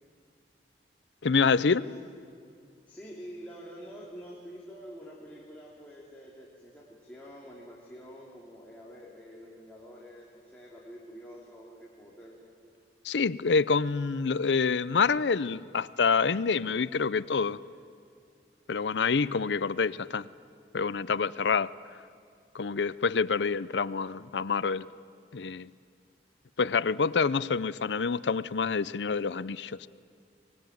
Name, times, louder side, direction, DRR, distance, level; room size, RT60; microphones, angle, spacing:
voice 1, 1.2-1.8 13.0-17.6 18.7-20.3 20.7-21.7 22.5-24.9 25.3-25.7 26.6-29.9, left 5 dB, 85° left, 18 dB, 0.6 m, -27 dB
voice 2, 2.9-12.3, equal, 10° left, -5 dB, 3.0 m, -47 dB
24.0 x 20.5 x 9.3 m, 2.4 s
head